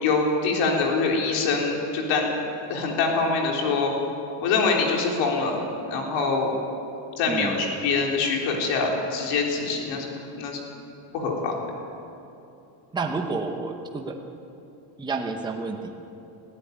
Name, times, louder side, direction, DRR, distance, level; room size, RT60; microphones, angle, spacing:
voice 1, 0.0-2.4 2.7-3.9 4.4-5.6 5.9-6.5 7.2-10.6 11.1-11.6, left 4 dB, 65° left, 0 dB, 4.0 m, -24 dB
voice 2, 7.3-7.6 12.9-14.2 15.0-15.9, right 3 dB, 10° right, 3 dB, 1.0 m, -30 dB
21.5 x 15.5 x 9.4 m, 2.9 s
cardioid pair, 175°, 48 cm